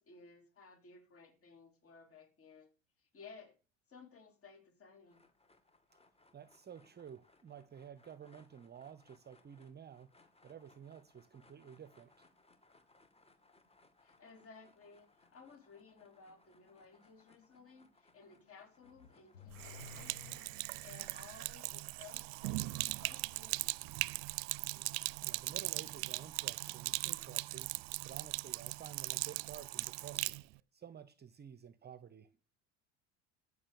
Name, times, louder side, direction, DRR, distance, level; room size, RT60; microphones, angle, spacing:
voice 1, 0.0-2.7 3.0-3.5 3.9-5.2 14.0-20.2 20.6-23.7, left 5 dB, 35° left, 4.6 m, -58 dB
sound 1, 5.1-19.5, left 3 dB, 15° left, 2.7 m, -68 dB
voice 2, 6.3-12.3 25.2-30.4 30.7-32.3, right 8 dB, 25° right, 0.9 m, -52 dB
Car / Accelerating revving vroom, 18.8-21.0, left 7 dB, 85° left, 1.5 m, -54 dB
Sink (filling or washing), 19.5-30.4, right 25 dB, 60° right, 0.5 m, -39 dB
14.5 x 6.6 x 7.0 m
hypercardioid pair, 75°, 37 cm